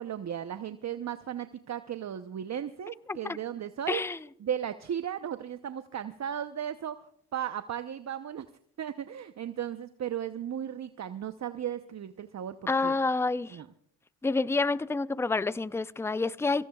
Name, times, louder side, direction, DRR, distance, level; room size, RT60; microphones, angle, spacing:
voice 1, 0.0-4.0 4.4-7.0 7.3-8.5 8.8-13.0 13.5-13.7, right 9 dB, 45° right, 0.8 m, -35 dB
voice 2, 3.9-4.2 12.7-13.6 14.2-16.7, left 3 dB, 5° left, 0.5 m, -28 dB
24.0 x 16.5 x 2.4 m
supercardioid pair, 65°, 40 cm